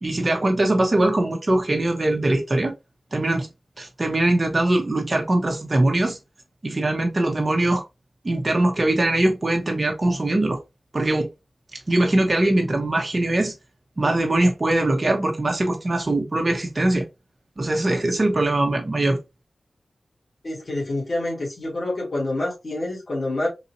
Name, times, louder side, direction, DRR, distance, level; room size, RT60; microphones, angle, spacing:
voice 1, 0.0-2.7 3.1-3.5 3.8-6.2 6.6-7.8 8.2-10.6 10.9-11.3 11.9-13.5 14.0-17.0 17.6-19.2, right 1 dB, 40° right, 1.1 m, -21 dB
voice 2, 20.4-23.5, left 2 dB, 55° left, 2.0 m, -27 dB
4.0 x 2.8 x 2.7 m
cardioid pair, 50°, 0 cm